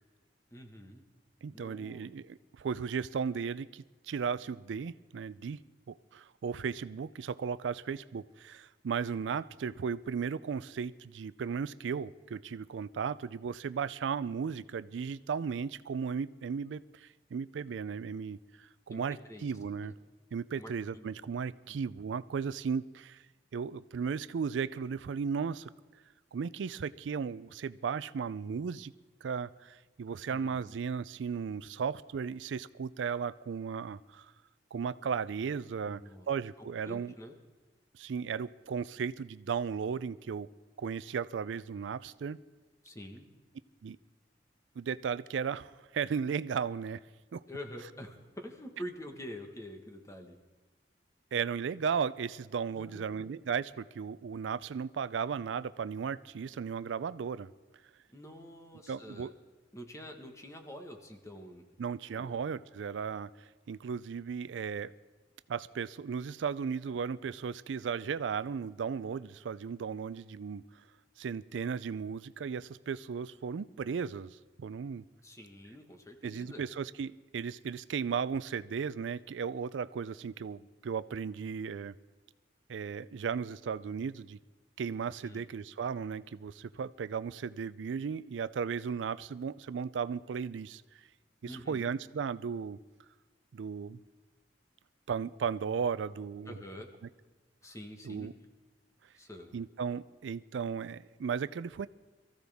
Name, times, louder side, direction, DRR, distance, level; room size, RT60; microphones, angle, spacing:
voice 1, 0.5-1.0 1.5-2.1 18.9-19.5 19.9-20.0 20.5-21.1 21.7-21.8 30.3-30.8 35.8-36.3 36.6-37.3 42.8-43.3 47.5-50.4 52.7-53.2 58.1-59.3 59.7-61.6 62.2-62.4 75.2-76.6 85.2-85.5 91.4-91.9 96.5-96.9 97.6-98.3 99.1-99.6, equal, 15° left, 4 dB, 1.4 m, -47 dB
voice 2, 1.4-5.6 5.9-19.9 20.3-23.2 23.5-25.7 26.3-28.9 29.2-34.3 34.7-36.0 36.3-37.1 37.9-40.5 40.8-42.4 43.8-44.0 44.8-47.0 47.3-47.4 51.3-57.5 58.9-59.3 61.8-63.3 63.7-64.9 65.5-70.6 71.2-75.0 76.2-81.9 82.7-84.4 84.8-90.8 91.4-92.8 93.5-94.0 95.1-96.5 98.0-98.3 99.5-101.9, right 6 dB, 85° right, 16 dB, 0.4 m, -35 dB
23.0 x 14.5 x 3.5 m, 1.2 s
head